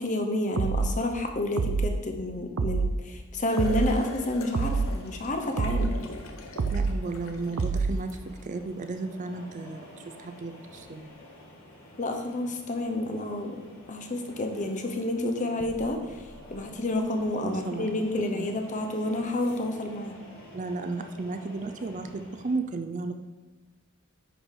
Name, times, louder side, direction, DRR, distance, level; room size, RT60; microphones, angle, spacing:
voice 1, 0.0-5.9 12.0-13.6 13.9-16.0 16.5-20.1, left 1 dB, 35° left, 5 dB, 0.8 m, -29 dB
sound 1, 0.6-1.0 1.6-2.0 2.6-3.0 3.6-4.0 4.5-4.9 5.6-6.0 6.6-7.0 7.6-8.0, right 4 dB, 85° right, 0.5 m, -26 dB
sound 2, 3.5-8.7 10.8-10.9 13.7-13.8 14.6-14.8 15.5-17.2 17.7-17.8 18.6-18.7 19.3-19.6, left 2 dB, 75° left, 0.8 m, -44 dB
sound 3, 4.2-22.5, left 1 dB, 60° left, 2.3 m, -50 dB
voice 2, 6.7-11.2 17.4-17.9 18.3-18.5 20.5-23.1, right 3 dB, 35° right, 7 dB, 0.4 m, -34 dB
10.0 x 4.8 x 3.7 m, 1.2 s
head